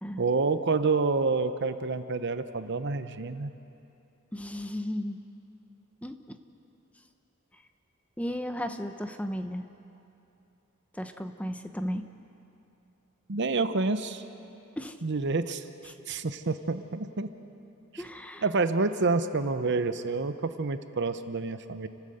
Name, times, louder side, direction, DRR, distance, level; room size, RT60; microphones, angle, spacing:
voice 1, 0.2-3.5 13.3-14.2 15.0-15.6 16.1-17.3 17.9-18.0 18.4-21.9, right 3 dB, 55° right, 10 dB, 0.8 m, -28 dB
voice 2, 4.3-5.2 6.0-6.4 7.5-7.6 8.2-9.6 10.9-12.1 14.8-15.0 15.9-16.0 18.0-18.5, equal, 5° left, 7 dB, 0.8 m, -35 dB
30.0 x 13.0 x 7.9 m, 2.8 s
head